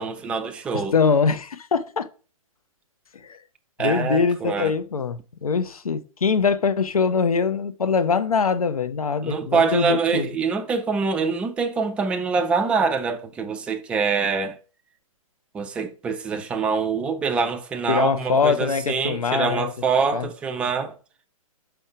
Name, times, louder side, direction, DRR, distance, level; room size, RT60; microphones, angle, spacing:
voice 1, 0.0-0.9 3.8-4.7 9.2-14.6 15.5-21.0, right 5 dB, 5° right, 0.3 m, -25 dB
voice 2, 0.7-2.1 3.1-3.4 3.8-10.3 17.9-19.7 20.1-20.3, left 5 dB, 80° left, 0.6 m, -23 dB
5.3 x 4.6 x 4.7 m
figure-of-eight pair, 125°, 18 cm